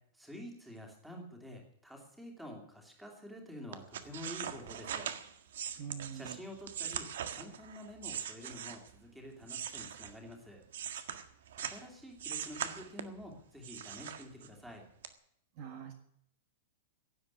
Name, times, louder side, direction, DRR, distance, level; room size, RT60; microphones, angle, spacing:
voice 1, 0.1-5.1 6.1-10.6 11.6-14.9, left 1 dB, ahead, 1 dB, 2.7 m, -48 dB
sound 1, 3.7-9.0 9.4-11.8 12.2-13.2 13.6-14.7 15.0-15.1, right 9 dB, 70° right, 1.7 m, -41 dB
voice 2, 5.8-6.4 15.6-15.9, right 7 dB, 35° right, 6 dB, 1.7 m, -43 dB
16.5 x 8.0 x 9.7 m, 0.69 s
supercardioid pair, 175°, 0 cm